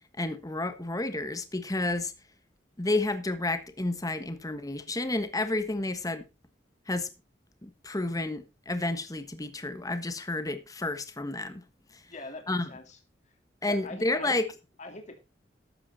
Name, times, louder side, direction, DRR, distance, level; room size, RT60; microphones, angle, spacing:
voice 1, 0.2-2.1 2.8-6.3 6.9-7.1 7.6-11.6 11.9-12.0 12.5-12.7 13.6-14.5, left 2 dB, 20° left, 1.4 m, -31 dB
voice 2, 12.1-13.0 13.7-14.3 14.8-15.2, left 2 dB, 40° left, 2.6 m, -42 dB
13.0 x 8.6 x 4.1 m
head